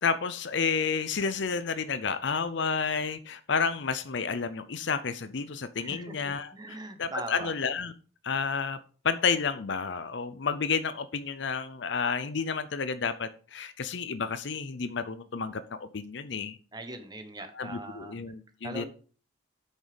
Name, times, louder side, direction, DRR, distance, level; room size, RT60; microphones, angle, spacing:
voice 1, 0.0-7.9 8.2-8.8 9.0-16.6 17.5-18.8, left 5 dB, 65° left, 13 dB, 0.6 m, -31 dB
voice 2, 5.8-7.5 16.7-18.1 18.6-18.8, right 2 dB, 20° right, 7 dB, 1.2 m, -41 dB
8.9 x 6.3 x 5.2 m, 0.40 s
head